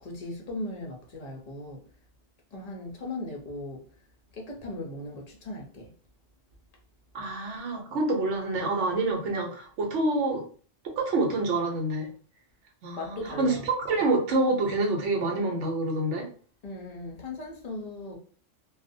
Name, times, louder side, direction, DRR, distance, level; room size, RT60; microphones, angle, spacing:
voice 1, 0.0-1.8 2.5-3.8 4.3-5.9 13.0-13.7 16.6-18.2, left 2 dB, 50° left, 0.5 m, -38 dB
voice 2, 7.1-10.4 10.8-12.1 12.8-16.3, right 2 dB, 70° right, 1.0 m, -27 dB
2.5 x 2.0 x 2.5 m
omnidirectional pair, 1.3 m